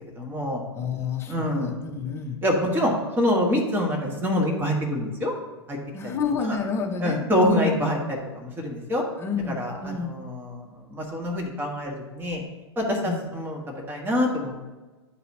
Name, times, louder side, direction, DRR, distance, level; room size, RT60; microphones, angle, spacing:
voice 1, 0.1-0.6 1.3-1.7 2.4-5.3 5.7-5.8 6.0-6.1 6.4-6.6 7.0-9.0 9.5-12.4 12.8-14.7, left 1 dB, 15° right, 0 dB, 1.3 m, -26 dB
voice 2, 0.7-2.4 5.9-7.7 9.2-10.2 13.0-13.3, left 5 dB, 15° left, 2 dB, 0.9 m, -30 dB
10.5 x 4.0 x 2.8 m, 1.2 s
figure-of-eight pair, 100°, 14 cm